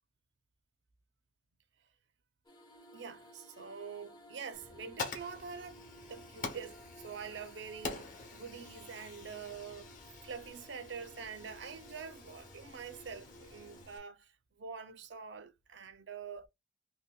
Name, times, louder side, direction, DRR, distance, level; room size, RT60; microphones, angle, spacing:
sound 1, 2.4-13.8, right 1 dB, 20° left, 0.6 m, -56 dB
voice 1, 2.9-9.9 10.2-16.5, right 6 dB, 65° right, 0.5 m, -46 dB
Fire, 4.5-14.0, left 3 dB, 45° left, 1.0 m, -47 dB
5.4 x 2.1 x 2.2 m
head